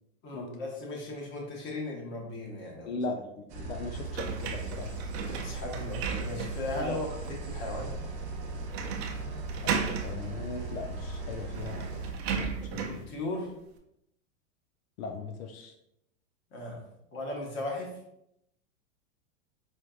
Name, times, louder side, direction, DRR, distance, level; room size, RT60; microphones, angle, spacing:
voice 1, 0.2-3.0 5.3-7.9 12.8-13.5 16.5-16.8 17.1-17.9, left 1 dB, 30° left, -1 dB, 1.1 m, -37 dB
voice 2, 2.9-5.0 6.8-7.0 9.3-9.4 9.6-12.0 12.3-13.0 15.0-15.7, left 4 dB, 80° left, 4 dB, 0.6 m, -38 dB
sound 1, 3.5-12.1, right 3 dB, 20° right, 0.3 m, -38 dB
sound 2, 4.1-6.7 7.2-7.3 8.7-9.2 9.5-10.1 11.1-11.2 11.5-13.0, right 6 dB, 50° right, 0.7 m, -34 dB
4.6 x 3.5 x 2.3 m, 0.80 s
supercardioid pair, 140°, 41 cm